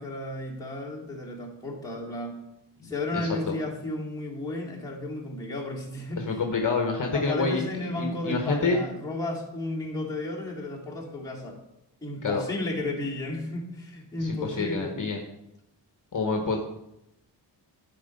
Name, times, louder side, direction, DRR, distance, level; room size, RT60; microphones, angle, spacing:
voice 1, 0.0-2.4 2.8-6.4 7.1-11.6 12.0-15.0, left 2 dB, 10° left, -4 dB, 2.2 m, -33 dB
voice 2, 2.8-3.5 6.2-8.8 12.2-12.4 14.2-15.2 16.1-16.6, left 4 dB, 45° left, 3 dB, 1.1 m, -28 dB
11.5 x 4.5 x 5.3 m, 0.84 s
wide cardioid pair, 125°, 42 cm